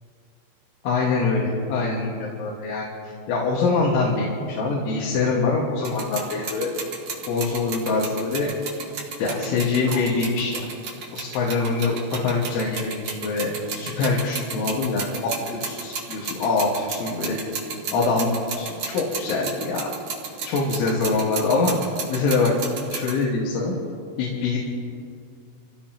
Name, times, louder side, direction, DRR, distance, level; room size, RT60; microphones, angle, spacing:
voice 1, 0.8-2.9 3.3-6.7 7.3-8.5 9.2-10.6 11.1-17.4 17.9-19.9 20.5-21.7 22.1-22.5 22.9-23.8 24.2-24.6, left 3 dB, 80° left, -4 dB, 4.1 m, -24 dB
sound 1, 5.8-23.2, right 5 dB, 55° right, 2.0 m, -34 dB
27.5 x 15.5 x 2.9 m, 2.3 s
omnidirectional pair, 5.4 m